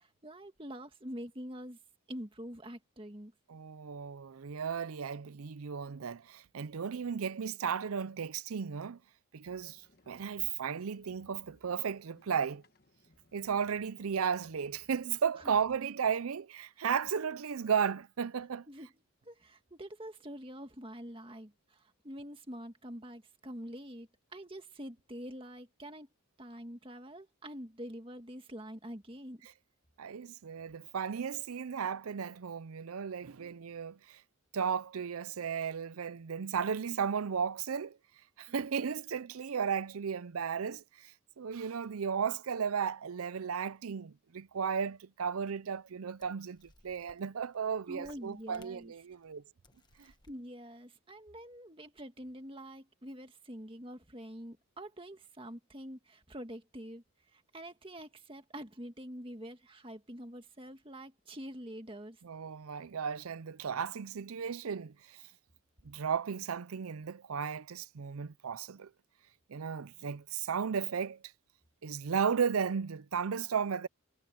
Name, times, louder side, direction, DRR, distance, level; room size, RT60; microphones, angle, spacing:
voice 1, 0.0-1.8 2.1-3.3 15.4-15.5 18.7-18.9 19.3-26.1 26.4-29.4 47.9-48.9 50.0-57.0 57.3-62.2, equal, 25° right, 1.9 m, -46 dB
voice 2, 3.5-9.0 9.3-12.6 13.3-18.7 30.0-34.2 34.5-38.0 38.4-41.1 41.4-49.4 62.2-65.2 65.8-68.9 69.5-71.2 71.8-73.9, right 7 dB, 80° right, 0.5 m, -35 dB
sound 1, 9.4-15.8, left 1 dB, 45° left, 1.4 m, -66 dB
sound 2, 45.1-45.2 45.9-46.0 46.2-47.6 48.0-49.2 49.6-50.4, left 2 dB, 20° left, 1.2 m, -64 dB
head